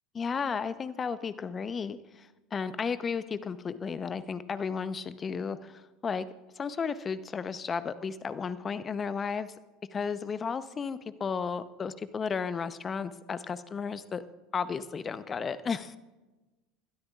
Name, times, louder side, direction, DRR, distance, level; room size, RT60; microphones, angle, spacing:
voice 1, 0.1-2.0 2.5-6.3 6.6-9.5 9.9-14.2 14.5-16.0, left 6 dB, 30° left, 14 dB, 0.8 m, -33 dB
22.0 x 12.5 x 2.5 m, 1.1 s
hypercardioid pair, 80°, 0 cm